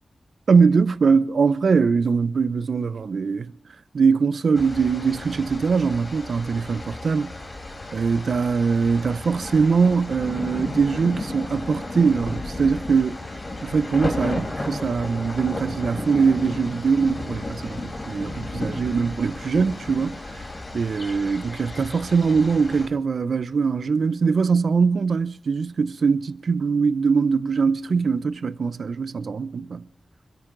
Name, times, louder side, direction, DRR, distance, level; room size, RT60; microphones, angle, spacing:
voice 1, 0.5-3.5 3.9-7.3 7.9-13.3 13.6-20.2 20.7-29.8, right 5 dB, 70° right, 0.5 m, -22 dB
sound 1, 4.5-22.9, left 2 dB, 40° left, 4.0 m, -33 dB
26.5 x 13.0 x 3.8 m
wide cardioid pair, 110°, 0 cm